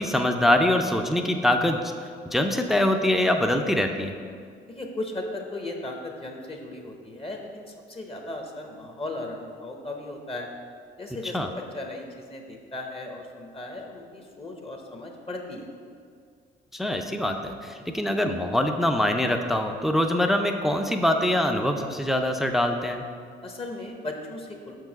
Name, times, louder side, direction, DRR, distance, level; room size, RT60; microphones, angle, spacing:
voice 1, 0.0-1.9 2.3-4.1 11.3-11.5 16.7-23.0, left 1 dB, ahead, 5 dB, 0.5 m, -24 dB
voice 2, 4.7-10.5 11.0-15.7 23.4-24.8, left 2 dB, 30° left, 2 dB, 0.9 m, -36 dB
5.8 x 4.7 x 5.8 m, 2.2 s
cardioid pair, 90°, 20 cm